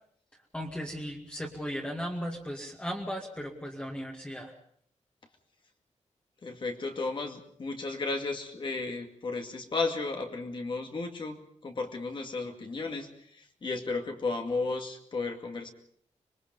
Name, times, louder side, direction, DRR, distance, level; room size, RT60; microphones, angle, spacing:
voice 1, 0.5-4.5, equal, 10° left, 0 dB, 2.2 m, -36 dB
voice 2, 6.4-15.7, left 3 dB, 45° left, 3 dB, 2.2 m, -34 dB
26.0 x 21.5 x 5.4 m, 0.62 s
wide cardioid pair, 170°, 12 cm